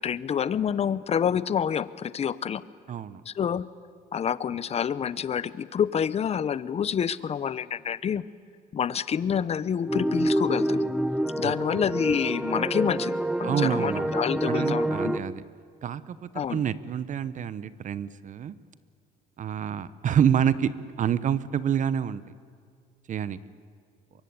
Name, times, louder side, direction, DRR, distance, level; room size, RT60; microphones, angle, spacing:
voice 1, 0.0-2.6 3.3-3.7 4.1-8.2 8.7-10.9 11.4-15.2 16.4-16.6, left 8 dB, 40° left, 17 dB, 0.8 m, -28 dB
voice 2, 2.9-3.2 11.4-11.5 13.4-14.2 14.4-15.4 15.8-18.6 19.4-20.7 21.0-22.2 23.1-23.4, right 9 dB, 50° right, 16 dB, 0.9 m, -27 dB
sound 1, 9.9-15.2, right 1 dB, 5° right, 0.8 m, -27 dB
24.0 x 23.0 x 9.6 m, 2.1 s
cardioid pair, 110°, 17 cm